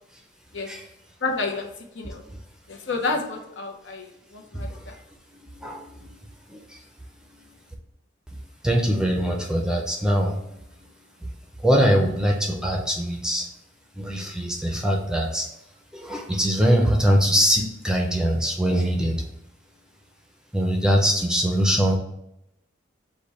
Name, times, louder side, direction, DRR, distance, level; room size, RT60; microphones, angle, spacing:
voice 1, 1.2-1.7 1.9-2.2 2.7-4.1 4.3-4.9, left 3 dB, 80° left, 3 dB, 0.7 m, -29 dB
voice 2, 4.5-4.9 5.3-6.8 7.3-7.4 8.6-10.6 11.2-11.3 11.6-13.5 14.0-15.5 15.9-19.2 20.5-22.0, equal, 5° right, 1 dB, 0.5 m, -23 dB
5.1 x 2.2 x 4.1 m, 0.81 s
head